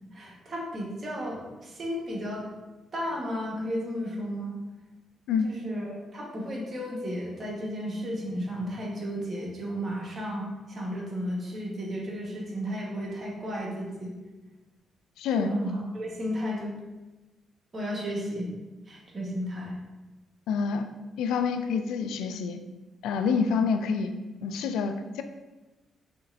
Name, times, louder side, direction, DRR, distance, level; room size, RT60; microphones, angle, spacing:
voice 1, 0.1-2.4 2.9-4.5 5.4-14.1 15.3-16.7 17.7-18.5 18.9-19.8, equal, 45° right, -2 dB, 1.5 m, -33 dB
voice 2, 15.2-15.5 20.5-20.8 21.2-22.6 23.0-24.1 24.4-25.2, left 5 dB, 85° left, 8 dB, 0.3 m, -27 dB
5.9 x 3.2 x 2.7 m, 1.2 s
supercardioid pair, 55°, 0 cm